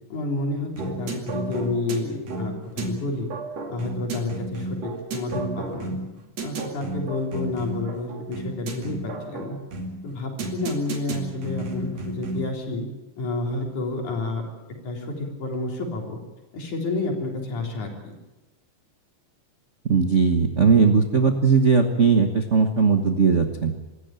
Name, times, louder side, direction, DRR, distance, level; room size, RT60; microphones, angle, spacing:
voice 1, 0.1-3.3 3.7-6.0 6.4-9.6 10.0-12.9 13.2-14.4 14.8-16.2 16.5-18.1, left 2 dB, 70° left, 1 dB, 5.1 m, -30 dB
sound 1, 0.8-12.6, right 2 dB, 55° right, 3.5 m, -33 dB
voice 2, 19.9-23.7, right 5 dB, 85° right, 6 dB, 0.6 m, -19 dB
25.5 x 14.0 x 9.0 m, 1.1 s
omnidirectional pair, 3.5 m